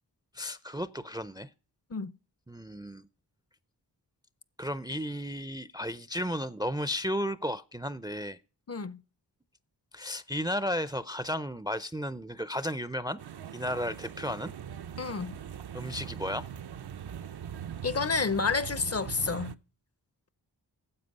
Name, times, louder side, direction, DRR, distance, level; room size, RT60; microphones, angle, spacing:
voice 1, 0.3-1.5 2.5-3.1 4.6-8.4 9.9-13.2 13.5-14.5 15.7-16.5, equal, 10° right, 0.5 m, -34 dB
voice 2, 8.7-9.0 15.0-15.4 17.8-19.5, left 4 dB, 35° left, 0.6 m, -30 dB
sound 1, 13.2-19.5, right 9 dB, 65° right, 0.6 m, -41 dB
9.8 x 7.5 x 5.3 m
cardioid pair, 45°, 43 cm